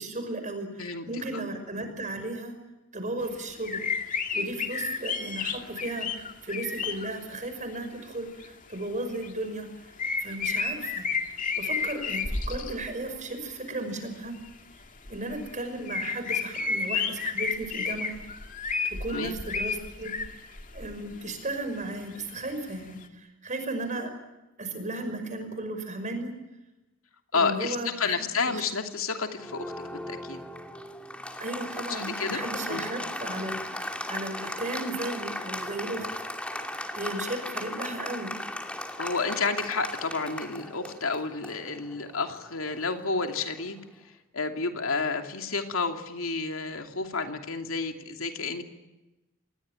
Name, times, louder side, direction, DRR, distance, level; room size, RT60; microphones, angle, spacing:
voice 1, 0.0-2.5 2.9-3.8 4.3-9.9 10.2-14.3 15.1-18.2 18.9-24.1 24.6-26.4 27.3-28.7 31.4-36.1 36.9-38.3, right 2 dB, 35° right, 7 dB, 5.6 m, -35 dB
voice 2, 0.8-1.4 19.1-19.3 27.3-30.4 31.9-32.4 32.7-32.9 39.0-43.8 44.3-48.6, left 4 dB, 75° left, 5 dB, 2.8 m, -30 dB
sound 1, 3.2-3.3 3.6-7.1 7.8-7.9 8.4-8.8 9.1-9.3 10.0-13.1 14.4-14.5 14.8-15.5 15.8-21.3 21.8-21.9 22.1-22.3 23.0-23.1, left 5 dB, 40° left, 2.1 m, -31 dB
Applause, 29.4-43.7, left 1 dB, 5° left, 2.5 m, -37 dB
27.5 x 19.5 x 9.0 m, 1.0 s
head